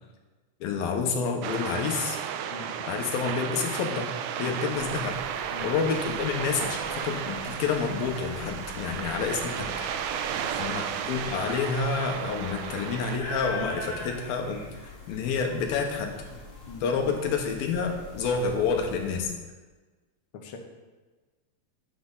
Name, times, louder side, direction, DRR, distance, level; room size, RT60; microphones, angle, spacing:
voice 1, 0.6-2.2 2.9-4.1 4.4-5.1 5.6-9.7 10.6-14.6 15.1-16.1 16.8-19.3, left 5 dB, 85° left, 3 dB, 2.9 m, -28 dB
sound 1, 1.4-13.2, right 9 dB, 90° right, 1.8 m, -34 dB
sound 2, 4.7-19.3, left 1 dB, 25° left, 1.5 m, -42 dB
voice 2, 10.3-10.7 16.7-17.1 20.3-20.6, left 5 dB, 65° left, 1 dB, 1.3 m, -43 dB
9.8 x 9.4 x 4.0 m, 1.3 s
omnidirectional pair, 4.2 m